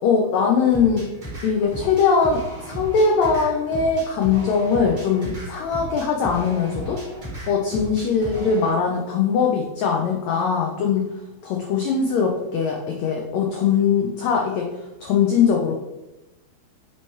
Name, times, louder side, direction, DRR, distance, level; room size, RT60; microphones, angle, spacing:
voice 1, 0.0-1.1 1.4-7.0 7.5-11.1 11.4-14.7 15.0-15.8, left 6 dB, 90° left, 1 dB, 1.5 m, -21 dB
sound 1, 0.7-8.7, right 1 dB, 25° right, 0.9 m, -35 dB
7.2 x 3.1 x 4.6 m, 1.0 s
omnidirectional pair, 4.0 m